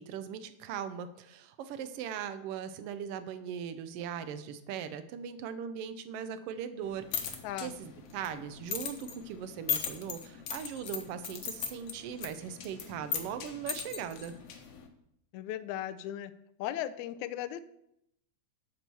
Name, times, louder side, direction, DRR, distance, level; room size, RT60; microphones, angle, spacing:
voice 1, 0.0-14.3, right 8 dB, 80° right, 11 dB, 1.3 m, -39 dB
sound 1, 6.8-14.9, left 7 dB, 60° left, 1.9 m, -39 dB
voice 2, 15.3-16.3 16.6-17.6, left 12 dB, 80° left, 12 dB, 2.0 m, -36 dB
11.5 x 4.5 x 6.9 m, 0.78 s
omnidirectional pair, 3.4 m